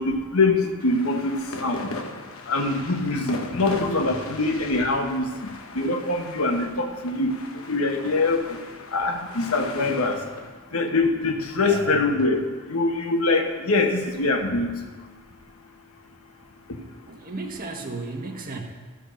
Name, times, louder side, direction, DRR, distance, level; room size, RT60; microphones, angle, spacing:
voice 1, 0.0-1.9 2.5-5.3 5.7-7.3 7.7-8.6 8.9-10.2 10.7-14.7, left 3 dB, 85° left, 4 dB, 1.3 m, -23 dB
sound 1, 0.8-12.3, left 3 dB, 70° left, 1.0 m, -39 dB
voice 2, 17.1-18.6, right 3 dB, 45° right, 1 dB, 1.6 m, -34 dB
13.0 x 6.6 x 6.5 m, 1.4 s
head